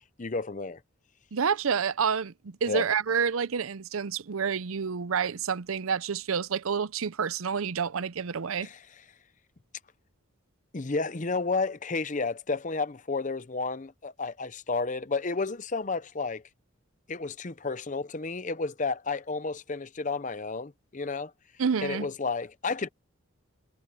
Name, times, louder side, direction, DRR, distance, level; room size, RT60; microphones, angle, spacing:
voice 1, 0.2-0.8 2.7-2.9 8.6-8.8 10.7-16.4 17.1-21.3 21.8-22.9, left 4 dB, 35° left, 0.7 m, -31 dB
voice 2, 1.3-8.7 21.6-22.1, right 6 dB, 80° right, 0.6 m, -28 dB
head